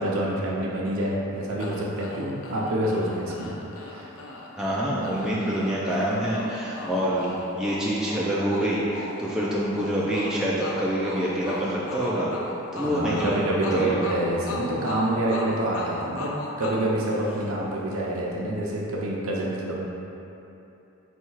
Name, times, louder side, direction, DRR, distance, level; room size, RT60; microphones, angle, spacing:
voice 1, 0.0-3.5 3.8-4.1 12.8-16.3 16.6-19.7, right 1 dB, 70° right, -4 dB, 0.7 m, -27 dB
OU long, 1.6-17.8, left 2 dB, 65° left, 0.4 m, -38 dB
voice 2, 4.6-12.3 12.7-13.4 13.7-14.0, equal, 5° right, -7 dB, 0.3 m, -26 dB
4.3 x 2.3 x 4.6 m, 2.9 s
head